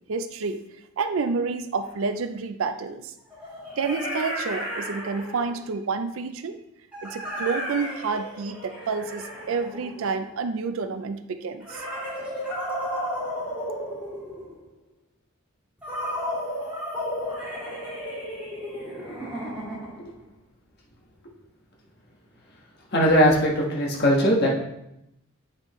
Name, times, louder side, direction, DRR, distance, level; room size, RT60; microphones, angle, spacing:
voice 1, 0.1-0.6 1.0-3.1 3.8-6.6 7.0-11.8, right 4 dB, 70° right, 9 dB, 0.4 m, -29 dB
sound 1, 1.8-1.9 3.3-5.7 6.9-10.4 11.6-14.6 15.8-20.1, equal, 5° right, 2.7 m, -33 dB
voice 2, 22.9-24.5, equal, 50° left, -3 dB, 1.4 m, -19 dB
8.3 x 5.1 x 3.1 m, 0.84 s
head